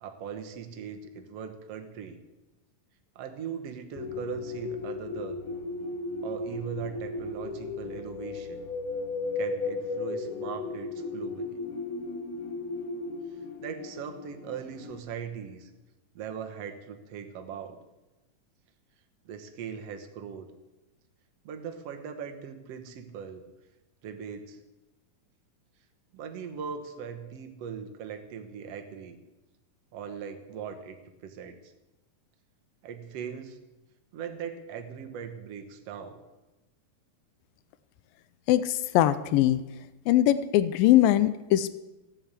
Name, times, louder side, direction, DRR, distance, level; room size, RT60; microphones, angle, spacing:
voice 1, 0.0-2.2 3.2-5.4 6.2-8.6 9.4-11.6 13.3-15.7 16.1-17.8 19.3-20.5 21.4-23.4 24.0-24.6 26.1-29.2 29.9-31.7 32.8-33.6 34.1-36.2, right 7 dB, 60° right, 6 dB, 1.9 m, -40 dB
sound 1, 4.0-15.0, left 3 dB, 65° left, 2.4 m, -35 dB
voice 2, 38.5-39.6 40.1-41.8, left 13 dB, 90° left, 14 dB, 2.4 m, -22 dB
16.0 x 7.8 x 8.1 m, 1.0 s
omnidirectional pair, 3.9 m